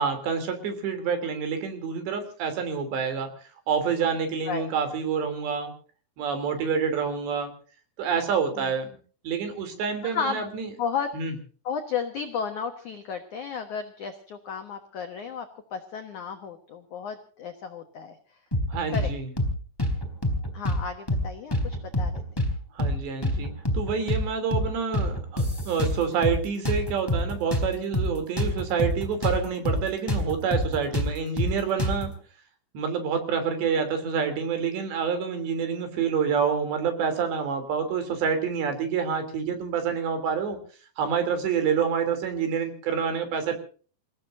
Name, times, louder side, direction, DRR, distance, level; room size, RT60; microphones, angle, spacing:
voice 1, 0.0-3.3 3.7-5.7 6.2-7.5 8.0-8.9 9.2-10.7 11.1-11.3 18.7-19.3 22.7-32.2 32.8-40.6 41.0-43.5, right 6 dB, 60° right, 7 dB, 5.2 m, -27 dB
voice 2, 10.0-10.4 10.8-11.1 11.6-15.5 15.7-18.4 18.9-19.1 20.5-22.2, left 6 dB, 85° left, 6 dB, 1.7 m, -33 dB
sound 1, 18.5-19.1 19.4-19.5 19.8-20.8 21.1-21.2 21.5-22.5 22.8-23.0 23.2-24.2 24.5-24.7 24.9-26.4 26.6-29.4 29.6-29.8 30.1-32.1, left 1 dB, 5° left, 2.9 m, -26 dB
28.5 x 17.0 x 2.7 m, 0.42 s
omnidirectional pair, 5.8 m